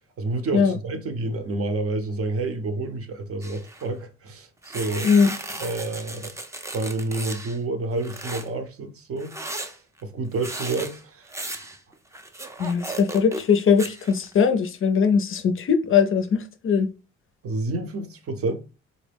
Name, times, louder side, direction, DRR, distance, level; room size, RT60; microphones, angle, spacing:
voice 1, 0.2-5.2 5.6-6.3 6.7-9.3 10.0-11.3 17.4-18.5, right 2 dB, 50° right, 0.7 m, -29 dB
sound 1, 3.4-3.9 4.6-7.6 8.0-8.5 9.2-13.5 13.8-14.3, right 1 dB, 10° right, 0.5 m, -36 dB
voice 2, 5.0-5.4 12.6-16.9, left 6 dB, 45° left, 0.5 m, -20 dB
3.9 x 2.1 x 3.3 m
cardioid pair, 90°, 30 cm